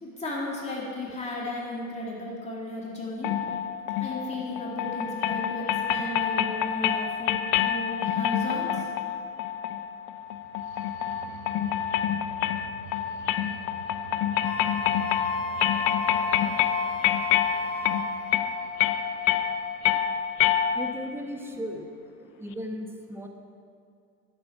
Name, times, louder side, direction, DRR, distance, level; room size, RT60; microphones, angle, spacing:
voice 1, 0.0-3.4 4.0-8.9, left 2 dB, 15° left, -4 dB, 2.3 m, -35 dB
sound 1, 3.2-21.1, left 10 dB, 50° left, 0.7 m, -27 dB
sound 2, 10.3-20.1, right 5 dB, 65° right, 1.4 m, -48 dB
Wind instrument woodwind instrument, 14.4-18.2, left 3 dB, 70° left, 1.9 m, -34 dB
voice 2, 20.7-21.8 22.4-23.3, equal, 5° right, 3 dB, 1.0 m, -35 dB
12.0 x 7.9 x 5.8 m, 2.4 s
supercardioid pair, 120°, 41 cm